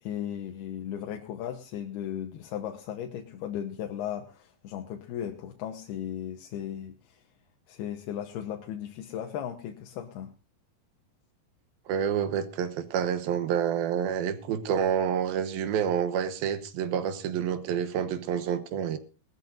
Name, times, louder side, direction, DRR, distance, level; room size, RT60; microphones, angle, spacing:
voice 1, 0.0-7.2 7.7-10.3, left 10 dB, 85° left, 3.1 m, -36 dB
voice 2, 11.9-19.0, right 8 dB, 75° right, 2.9 m, -28 dB
20.5 x 13.5 x 2.6 m
omnidirectional pair, 4.5 m